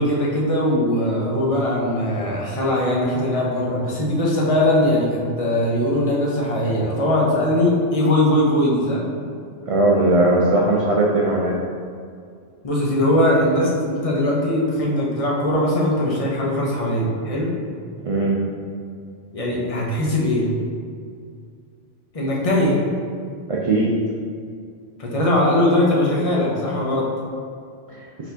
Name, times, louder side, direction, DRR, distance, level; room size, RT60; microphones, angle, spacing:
voice 1, 0.0-9.1 12.6-17.5 19.3-20.5 22.1-22.8 25.0-27.1, left 1 dB, 35° left, -4 dB, 0.7 m, -20 dB
voice 2, 9.7-11.6 18.0-18.3 23.5-23.9 27.9-28.0, right 2 dB, 60° right, -4 dB, 0.3 m, -18 dB
4.5 x 4.2 x 2.7 m, 2.2 s
omnidirectional pair, 1.2 m